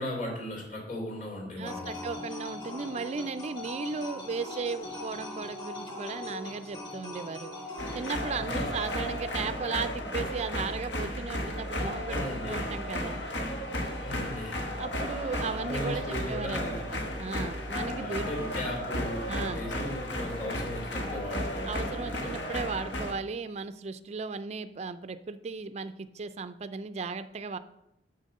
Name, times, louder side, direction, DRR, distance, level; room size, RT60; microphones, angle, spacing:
voice 1, 0.0-2.1 8.3-8.8 12.1-12.7 14.0-14.6 15.5-16.9 17.8-22.4, left 1 dB, 45° left, -2 dB, 3.0 m, -37 dB
sound 1, 1.6-8.2, left 2 dB, 30° left, 2.6 m, -40 dB
voice 2, 1.6-7.5 7.9-13.2 14.7-18.3 19.3-19.7 21.7-27.6, right 4 dB, 35° right, 11 dB, 0.4 m, -36 dB
sound 2, 7.8-23.1, left 1 dB, 75° left, 1.3 m, -34 dB
6.8 x 6.5 x 5.3 m, 0.83 s
head